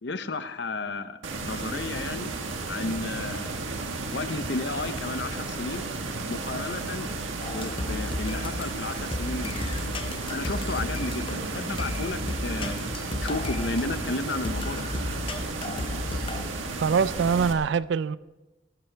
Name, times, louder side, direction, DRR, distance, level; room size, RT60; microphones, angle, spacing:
voice 1, 0.0-2.3 2.7-3.5 4.1-5.9 6.3-7.1 7.5-9.7 10.3-14.9, left 3 dB, 60° left, 0.8 m, -33 dB
sound 1, 1.2-17.5, right 3 dB, 85° right, 1.5 m, -33 dB
Walk footsteps, 1.7-2.1 2.8-3.0 3.8-4.2 4.8-5.1 6.0-6.3 7.3-7.7 8.1-8.4 9.0-9.5 10.4-10.9, right 1 dB, 30° right, 1.5 m, -51 dB
sound 2, 7.4-16.5, left 2 dB, 25° left, 0.6 m, -34 dB
voice 2, 16.8-18.2, right 6 dB, 65° right, 0.3 m, -24 dB
19.5 x 12.0 x 3.4 m
head